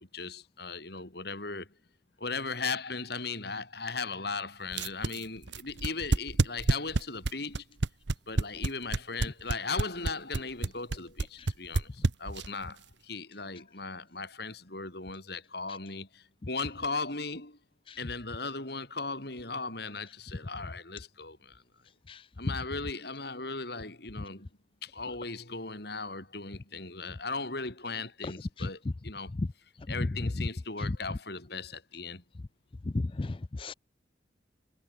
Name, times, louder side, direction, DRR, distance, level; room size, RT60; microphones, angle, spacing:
voice 1, 0.0-1.7 2.2-7.6 8.3-17.6 18.0-21.6 22.4-24.5 24.8-29.3 29.9-32.2, left 4 dB, 55° left, 4.1 m, -37 dB
sound 1, 4.7-12.6, right 2 dB, 65° right, 0.9 m, -27 dB
voice 2, 32.9-33.7, left 2 dB, 25° left, 0.4 m, -34 dB
head